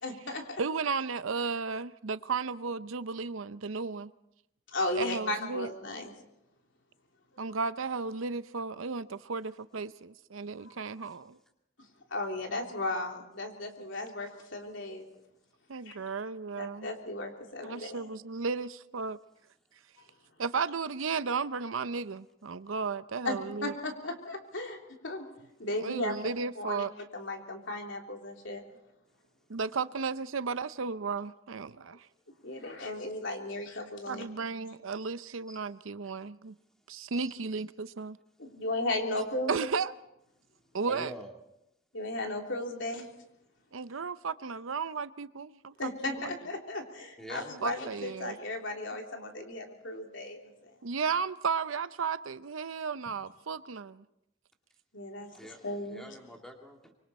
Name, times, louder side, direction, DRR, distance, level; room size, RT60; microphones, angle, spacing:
voice 1, 0.0-0.6 4.7-6.1 10.6-10.7 12.1-15.1 15.9-16.0 16.6-18.1 23.2-25.3 25.6-26.2 26.6-26.8 27.1-28.6 32.4-34.2 38.4-39.5 41.9-43.1 45.8-50.8 54.9-55.3 55.6-56.2, left 2 dB, 65° left, 3.4 m, -35 dB
voice 2, 0.6-4.1 5.0-5.7 7.4-11.4 15.7-16.9 17.6-19.2 20.4-23.7 25.8-26.9 29.5-32.1 34.1-36.6 36.9-38.2 39.5-39.9 40.7-41.1 43.7-45.9 47.6-48.4 50.8-54.0, right 5 dB, 80° right, 0.7 m, -34 dB
voice 3, 40.9-41.3 47.2-48.1 55.3-56.9, equal, 5° left, 2.5 m, -46 dB
25.5 x 24.0 x 4.3 m
head